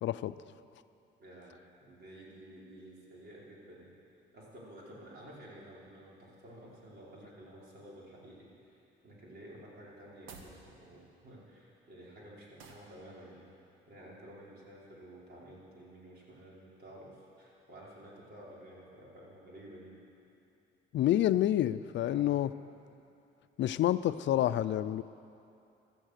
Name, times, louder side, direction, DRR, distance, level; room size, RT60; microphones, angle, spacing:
voice 1, 0.0-0.3 20.9-22.5 23.6-25.0, left 12 dB, 65° left, 14 dB, 0.5 m, -28 dB
voice 2, 1.2-1.5 1.8-3.9 4.3-13.4 13.9-19.9 22.0-22.4, right 1 dB, 55° right, -5 dB, 4.7 m, -52 dB
sound 1, 10.2-10.6 12.6-12.9, right 5 dB, 90° right, 1.5 m, -51 dB
16.5 x 12.5 x 6.6 m, 2.7 s
cardioid pair, 90°, 20 cm